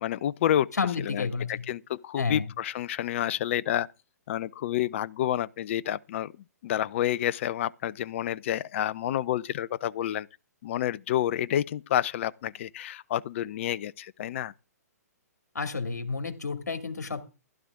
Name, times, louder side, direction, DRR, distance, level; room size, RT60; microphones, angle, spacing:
voice 1, 0.0-0.7 1.1-1.3 1.7-3.9 4.3-6.3 6.6-10.3 10.6-14.5, left 11 dB, 50° left, 0.6 m, -29 dB
voice 2, 0.8-1.6 2.2-2.5 15.5-17.3, left 4 dB, 80° left, 2.5 m, -30 dB
15.5 x 11.5 x 3.7 m
figure-of-eight pair, 125°, 9 cm